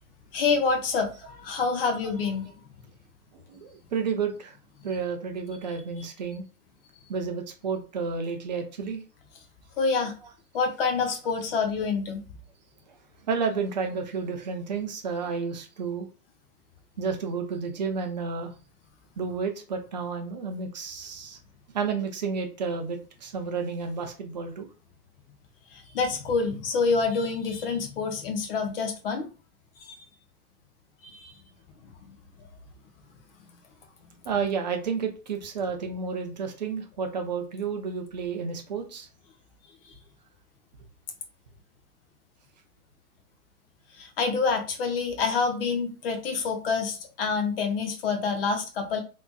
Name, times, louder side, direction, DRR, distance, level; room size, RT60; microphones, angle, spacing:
voice 1, 0.3-2.5 9.8-10.1 10.5-12.2 25.7-29.3 29.9-30.0 31.1-31.3 32.1-32.2 44.0-49.0, left 4 dB, 35° left, 5 dB, 0.8 m, -27 dB
voice 2, 3.5-4.5 4.8-6.4 7.1-9.0 13.3-16.1 17.0-18.5 19.2-21.4 21.7-24.7 34.3-39.1, right 5 dB, 30° right, 5 dB, 0.5 m, -31 dB
3.4 x 3.0 x 2.3 m, 0.34 s
figure-of-eight pair, 115°, 47 cm